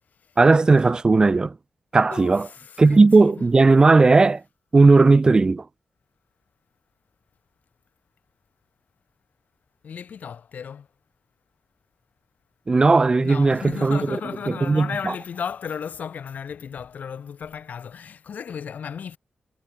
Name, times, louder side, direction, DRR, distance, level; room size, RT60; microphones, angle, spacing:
voice 1, 0.4-1.6 1.9-2.5 2.8-4.4 4.7-5.7 12.7-14.2 14.5-15.1, right 3 dB, 30° right, 0.4 m, -16 dB
voice 2, 2.1-3.4 9.8-10.9 13.2-19.2, left 7 dB, 75° left, 1.3 m, -34 dB
wide cardioid pair, 120°, 3 cm